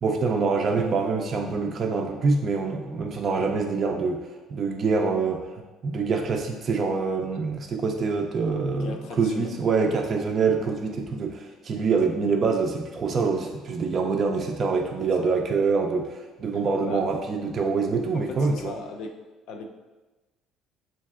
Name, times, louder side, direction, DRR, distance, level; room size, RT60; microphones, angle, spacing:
voice 1, 0.0-4.2 4.5-5.5 5.8-18.7, right 4 dB, 35° right, 2 dB, 0.3 m, -25 dB
voice 2, 8.8-9.6 10.6-10.7 12.0-12.4 15.2-15.3 16.8-17.2 18.1-19.2 19.5-19.7, left 4 dB, 70° left, 4 dB, 0.5 m, -38 dB
7.2 x 2.5 x 2.4 m, 1.2 s
cardioid pair, 150°, 0 cm